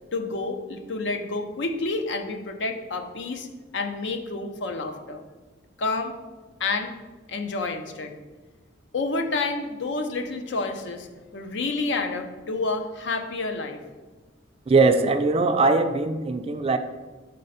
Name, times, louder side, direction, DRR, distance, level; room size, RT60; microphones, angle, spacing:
voice 1, 0.1-3.5 3.7-5.2 5.8-6.2 6.6-6.9 7.3-8.1 8.9-11.1 11.3-13.8, left 3 dB, 70° left, 6 dB, 0.6 m, -29 dB
voice 2, 14.7-16.8, right 3 dB, 30° right, 7 dB, 0.3 m, -20 dB
5.4 x 3.2 x 5.5 m, 1.2 s
head